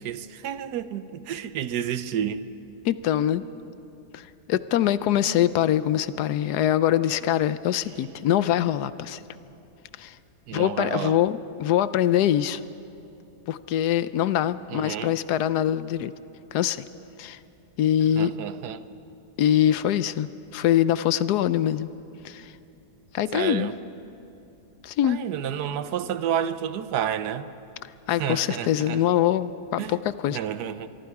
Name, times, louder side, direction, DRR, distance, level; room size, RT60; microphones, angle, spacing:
voice 1, 0.0-2.4 10.5-11.2 14.7-15.2 18.2-18.8 23.3-23.8 25.1-27.5 28.2-29.0 29.8-30.0 30.3-30.9, right 9 dB, 80° right, 1.3 m, -30 dB
voice 2, 2.8-3.4 4.1-4.2 4.5-9.2 10.0-10.1 10.5-12.6 13.5-16.1 16.5-16.8 17.2-17.4 17.8-18.3 19.4-21.9 22.2-22.5 23.1-23.7 24.8-25.2 28.1-30.0 30.2-30.4, left 11 dB, 80° left, 1.2 m, -23 dB
24.5 x 23.0 x 4.8 m
omnidirectional pair, 1.7 m